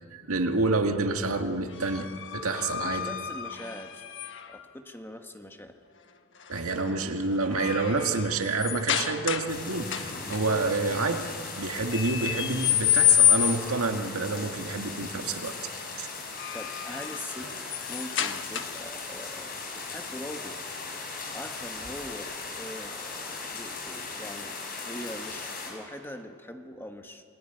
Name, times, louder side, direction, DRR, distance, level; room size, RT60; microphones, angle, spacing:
voice 1, 0.1-3.1 6.5-11.3 11.6-15.5 16.0-16.1, right 3 dB, 80° right, 5 dB, 2.0 m, -28 dB
sound 1, 1.7-4.6 6.4-6.7 7.1-9.6 9.9-10.4 11.9-13.8 16.1-19.0, left 9 dB, 55° left, 1.3 m, -28 dB
voice 2, 2.8-4.0 4.5-5.7 16.5-17.5 17.9-20.6 21.3-24.6 24.8-27.2, left 1 dB, 10° left, 5 dB, 1.5 m, -42 dB
sound 2, 9.5-25.7, left 4 dB, 40° left, 5.3 m, -38 dB
29.5 x 20.5 x 9.3 m, 2.4 s
head